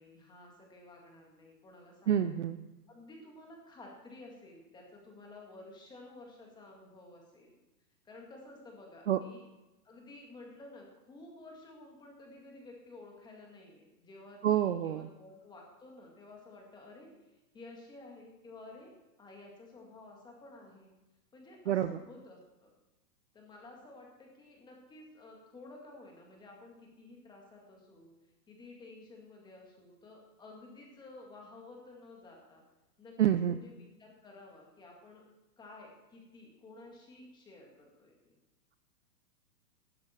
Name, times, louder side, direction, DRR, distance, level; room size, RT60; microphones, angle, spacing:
voice 1, 0.0-2.5 2.9-7.5 8.0-9.5 9.8-17.1 17.5-18.9 19.2-20.9 21.3-22.7 23.3-28.1 28.5-32.6 33.0-35.2 35.6-38.4, left 2 dB, 10° left, 0 dB, 2.0 m, -53 dB
voice 2, 2.1-2.6 9.1-9.2 14.4-15.1 21.7-22.0 33.2-33.6, right 10 dB, 45° right, 11 dB, 0.5 m, -28 dB
15.0 x 12.5 x 4.4 m, 1.0 s
hypercardioid pair, 160°, 49 cm